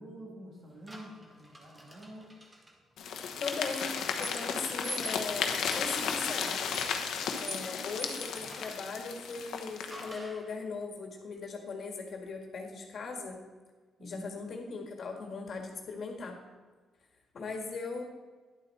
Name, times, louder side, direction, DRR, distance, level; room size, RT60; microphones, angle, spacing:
voice 1, 0.0-2.3 14.0-14.4, right 1 dB, 50° right, -2 dB, 3.0 m, -47 dB
sound 1, 0.9-2.7 3.7-8.9 9.9-10.5, right 1 dB, 15° right, 1.5 m, -46 dB
sound 2, 3.0-10.2, left 6 dB, 75° left, 1.0 m, -34 dB
voice 2, 3.4-6.6 7.4-13.4 14.0-16.4 17.3-18.0, left 4 dB, 50° left, 3 dB, 1.7 m, -39 dB
10.5 x 8.2 x 4.3 m, 1.4 s
cardioid pair, 115°, 0 cm